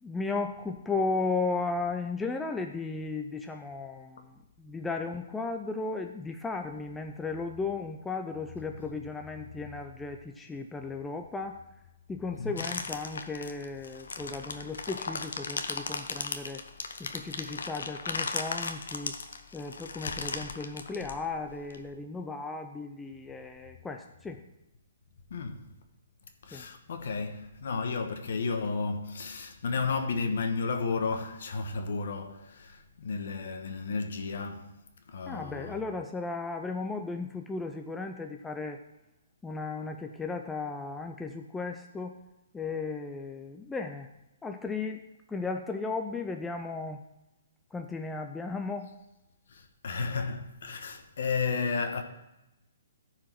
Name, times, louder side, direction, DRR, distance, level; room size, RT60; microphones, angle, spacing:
voice 1, 0.0-11.6 12.1-16.6 17.0-19.2 19.5-24.4 26.5-26.7 35.3-38.8 39.4-42.2 42.5-44.1 44.4-45.0 45.3-47.0 47.7-48.9, left 3 dB, 5° left, 0.4 m, -35 dB
voice 2, 12.3-12.6 25.3-25.7 26.4-34.8 35.1-35.8 49.5-52.0, left 4 dB, 60° left, 1.2 m, -33 dB
sound 1, 12.6-21.8, left 4 dB, 90° left, 1.0 m, -36 dB
14.0 x 4.9 x 4.6 m
hypercardioid pair, 170°, 0 cm